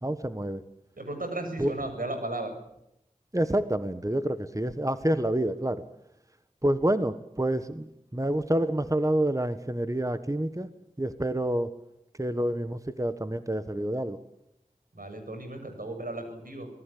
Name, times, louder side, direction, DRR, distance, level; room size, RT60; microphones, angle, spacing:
voice 1, 0.0-0.6 1.6-1.7 3.3-5.8 6.6-10.7 11.0-11.7 12.1-14.2, right 1 dB, 25° right, 11 dB, 1.4 m, -28 dB
voice 2, 1.0-2.5 14.9-16.7, right 2 dB, 85° right, 6 dB, 7.1 m, -35 dB
26.5 x 19.5 x 8.5 m, 0.82 s
wide cardioid pair, 45°, 14 cm